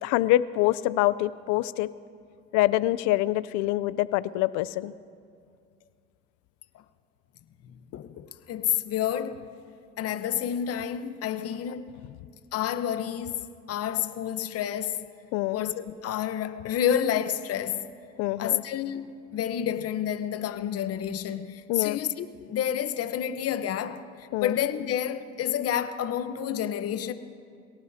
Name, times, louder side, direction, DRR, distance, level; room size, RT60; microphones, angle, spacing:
voice 1, 0.0-1.9 2.5-4.9 15.3-15.6 18.2-18.6 21.7-22.0 24.3-24.5, left 16 dB, 75° left, 0.6 m, -25 dB
voice 2, 7.9-9.5 10.0-11.9 12.5-15.1 15.5-17.9 18.4-27.1, left 10 dB, 55° left, 1.0 m, -29 dB
28.0 x 18.0 x 2.8 m
supercardioid pair, 90°, 30 cm